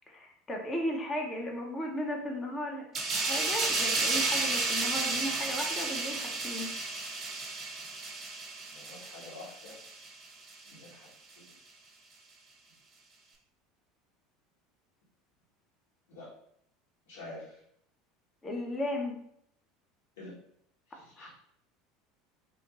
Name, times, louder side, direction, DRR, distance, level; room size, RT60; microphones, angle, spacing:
voice 1, 0.1-2.8 3.1-6.7 18.4-19.2 21.2-21.3, equal, 25° left, 1 dB, 0.7 m, -35 dB
sound 1, 2.9-10.1 10.5-10.7, right 3 dB, 35° right, 0.6 m, -32 dB
voice 2, 8.6-9.7 10.7-11.1 16.1-16.3 17.1-17.5 20.2-20.3 20.9-21.3, left 2 dB, 75° left, -7 dB, 1.3 m, -47 dB
2.6 x 2.5 x 2.9 m, 0.70 s
figure-of-eight pair, 75°, 0 cm